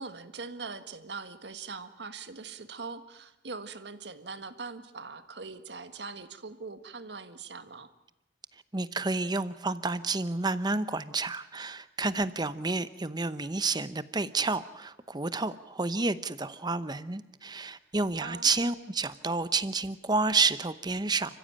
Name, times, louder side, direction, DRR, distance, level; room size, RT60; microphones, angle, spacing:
voice 1, 0.0-7.9 18.2-18.5, right 4 dB, 70° right, 10 dB, 1.6 m, -42 dB
voice 2, 8.7-21.4, right 3 dB, 25° right, 14 dB, 0.9 m, -30 dB
30.0 x 15.0 x 9.0 m, 0.92 s
head